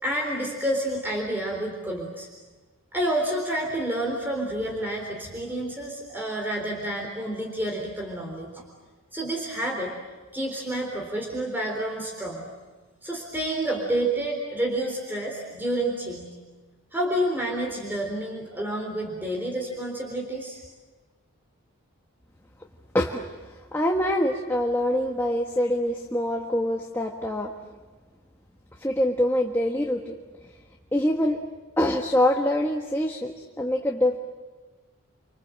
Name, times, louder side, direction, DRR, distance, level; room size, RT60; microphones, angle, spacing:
voice 1, 0.0-2.3 2.9-8.7 9.1-9.9 10.3-12.5 13.0-16.4 16.9-20.6, right 1 dB, 10° right, -1 dB, 3.8 m, -29 dB
voice 2, 23.7-27.5 28.8-30.1 30.9-31.4 31.8-33.3 33.6-34.2, left 1 dB, 10° left, 0 dB, 1.5 m, -24 dB
30.0 x 25.5 x 7.7 m, 1.3 s
head